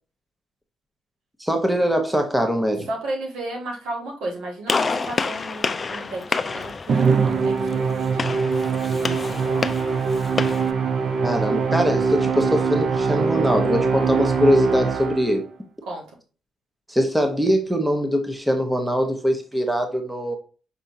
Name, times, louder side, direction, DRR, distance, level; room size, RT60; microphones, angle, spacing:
voice 1, 1.4-2.9 11.2-15.4 16.9-20.4, equal, 5° right, 5 dB, 0.9 m, -22 dB
voice 2, 2.9-8.4 8.9-9.8 15.8-16.0, right 1 dB, 85° right, -1 dB, 1.7 m, -34 dB
Gunshot gunfire, 4.7-10.7, left 4 dB, 30° left, 0.4 m, -28 dB
Musical instrument, 6.9-15.5, right 5 dB, 50° right, 0.6 m, -22 dB
5.5 x 3.5 x 2.6 m, 0.36 s
cardioid pair, 90°, 0 cm